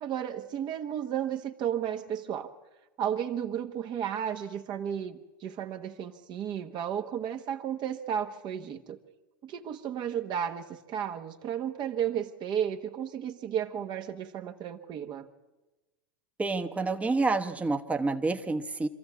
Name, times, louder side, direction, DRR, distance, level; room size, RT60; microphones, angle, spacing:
voice 1, 0.0-2.5 3.0-9.0 9.4-15.3, right 9 dB, 40° right, 6 dB, 1.2 m, -33 dB
voice 2, 16.4-18.9, right 3 dB, 10° right, 5 dB, 1.1 m, -28 dB
25.5 x 13.5 x 8.3 m, 1.1 s
hypercardioid pair, 95°, 12 cm